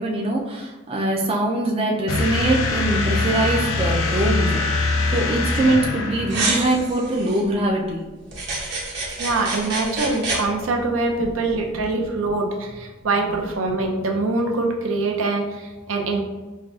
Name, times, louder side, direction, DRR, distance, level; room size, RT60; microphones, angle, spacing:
voice 1, 0.0-8.1 11.7-11.9, right 1 dB, 30° right, -1 dB, 0.4 m, -23 dB
sound 1, 2.1-6.8, left 2 dB, 75° left, 0.4 m, -23 dB
sound 2, 6.3-7.4 8.3-10.4, right 3 dB, 60° right, 1.1 m, -27 dB
voice 2, 9.2-16.2, right 3 dB, 85° right, 1 dB, 0.6 m, -24 dB
5.3 x 2.3 x 2.3 m, 1.2 s
head